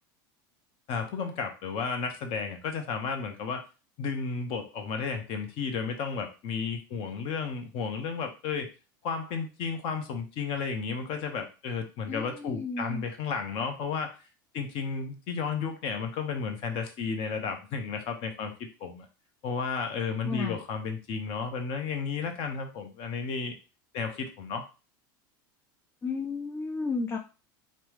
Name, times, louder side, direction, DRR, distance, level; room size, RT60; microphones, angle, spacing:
voice 1, 0.9-3.6 4.0-8.7 9.0-14.2 14.5-19.1 19.4-23.5 23.9-24.7, left 5 dB, 55° left, 5 dB, 0.8 m, -33 dB
voice 2, 12.1-13.1 20.3-20.6 26.0-27.2, left 4 dB, 20° left, 4 dB, 0.3 m, -33 dB
3.3 x 2.0 x 3.0 m, 0.32 s
hypercardioid pair, 105°, 11 cm